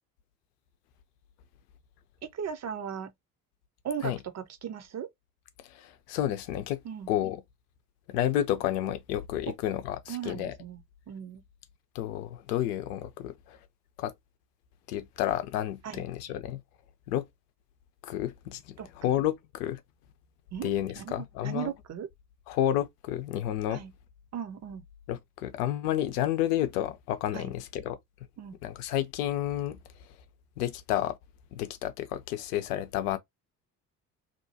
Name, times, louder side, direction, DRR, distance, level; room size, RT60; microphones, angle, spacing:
voice 1, 2.3-3.1 3.8-5.1 6.8-7.1 9.5-9.6 10.1-10.8 11.1-11.4 15.8-16.0 18.8-19.2 20.5-20.7 21.0-22.1 23.7-23.9 24.3-24.8 27.3-27.5 28.4-28.5, right 8 dB, 35° right, 0.7 m, -37 dB
voice 2, 5.7-6.8 7.1-7.4 8.1-10.5 11.9-13.6 14.0-14.1 14.9-16.6 17.1-17.2 18.0-19.8 20.6-21.7 22.5-23.8 25.1-28.0 28.6-29.8 30.6-31.1 31.5-33.2, left 12 dB, 75° left, 0.7 m, -30 dB
2.9 x 2.2 x 2.8 m
hypercardioid pair, 55°, 47 cm